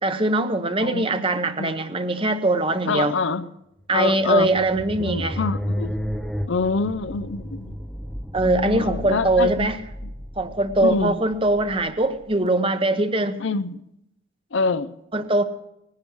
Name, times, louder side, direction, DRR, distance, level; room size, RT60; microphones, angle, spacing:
voice 1, 0.0-3.1 3.9-5.4 8.3-9.8 10.4-13.4 15.1-15.4, right 2 dB, 25° right, 0.9 m, -22 dB
voice 2, 0.8-1.2 1.6-1.7 2.9-3.5 3.9-4.5 5.0-6.0 6.5-7.8 8.4-9.7 10.0-10.1 10.8-11.2 13.4-13.8 14.5-14.9, left 4 dB, 65° left, 0.6 m, -26 dB
sound 1, 4.0-12.3, equal, ahead, 0.6 m, -33 dB
18.5 x 10.5 x 6.3 m
head